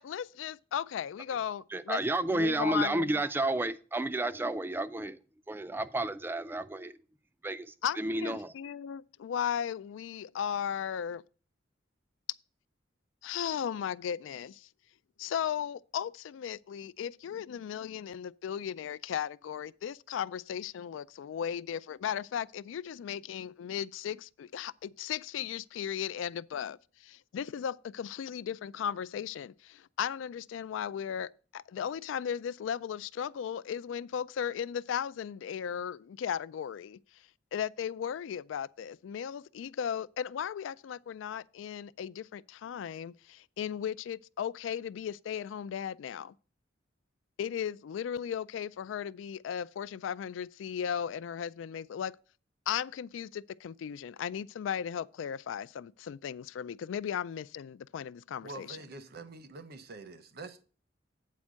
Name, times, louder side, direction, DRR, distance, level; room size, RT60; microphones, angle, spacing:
voice 1, 0.0-2.0 2.3-3.1 7.8-11.2 13.2-14.7 15.2-26.8 27.0-37.0 37.5-46.3 47.4-52.2 52.7-58.8, left 8 dB, 90° left, 0.3 m, -36 dB
voice 2, 1.7-5.2 5.5-7.0 7.4-8.5, right 2 dB, 10° right, 0.3 m, -31 dB
voice 3, 58.4-60.6, right 3 dB, 55° right, 0.8 m, -46 dB
8.4 x 4.4 x 6.2 m
head